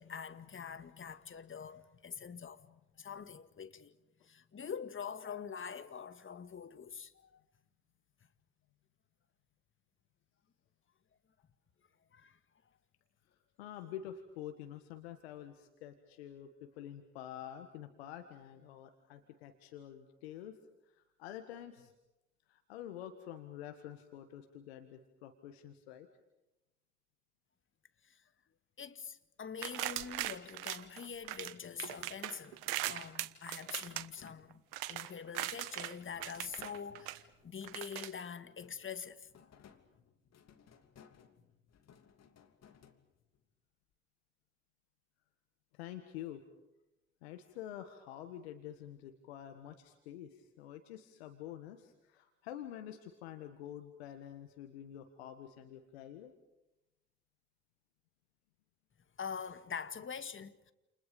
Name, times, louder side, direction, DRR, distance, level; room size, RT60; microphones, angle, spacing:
voice 1, 0.0-3.9 4.2-7.4 12.1-12.4 28.0-28.2 28.8-32.6 32.9-34.6 34.9-39.5 59.2-60.7, left 6 dB, 40° left, 2.1 m, -45 dB
voice 2, 13.3-20.6 20.8-21.9 22.5-26.1 45.7-46.4 47.2-56.3, left 11 dB, 85° left, 1.6 m, -48 dB
sound 1, 29.6-31.5 31.8-35.9 36.2-37.2 37.6-38.1, right 15 dB, 80° right, 1.3 m, -40 dB
sound 2, 31.8-34.9 35.3-38.1 38.5-43.4, left 7 dB, 55° left, 2.9 m, -62 dB
29.5 x 29.0 x 5.3 m
hypercardioid pair, 50°, 31 cm